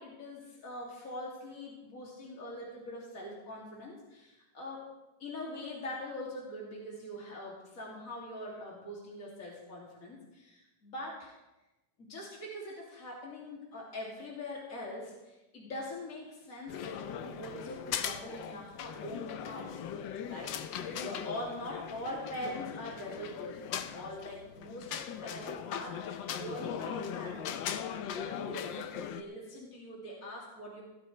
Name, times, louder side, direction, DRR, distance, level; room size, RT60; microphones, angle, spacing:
voice 1, 0.0-4.9 5.2-11.4 12.0-20.6 21.0-27.6 27.9-30.8, left 1 dB, 45° left, -4 dB, 3.1 m, -43 dB
sound 1, 16.7-29.2, left 8 dB, 85° left, 1.5 m, -39 dB
16.5 x 14.0 x 3.3 m, 0.99 s
omnidirectional pair, 2.0 m